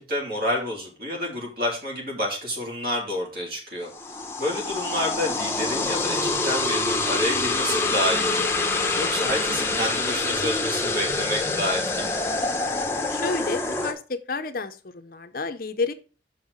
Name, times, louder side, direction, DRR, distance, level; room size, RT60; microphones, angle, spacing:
voice 1, 0.0-8.6 9.0-12.1, equal, 50° right, -1 dB, 3.2 m, -29 dB
sound 1, 3.9-13.9, left 3 dB, 15° left, 0.8 m, -26 dB
voice 2, 13.1-15.9, left 3 dB, 50° left, 10 dB, 0.6 m, -30 dB
6.6 x 5.6 x 5.0 m, 0.35 s
head